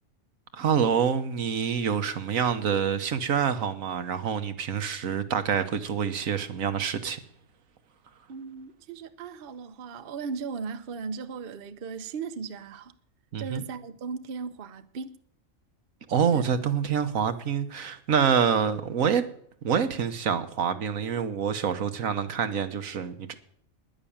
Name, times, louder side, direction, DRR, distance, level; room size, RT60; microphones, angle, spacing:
voice 1, 0.5-7.2 13.3-13.6 16.1-19.2 19.6-23.3, right 7 dB, 75° right, 1.4 m, -26 dB
voice 2, 8.3-12.9 13.4-15.2 16.3-16.4, right 5 dB, 50° right, 0.9 m, -37 dB
10.5 x 10.5 x 8.6 m
omnidirectional pair, 1.4 m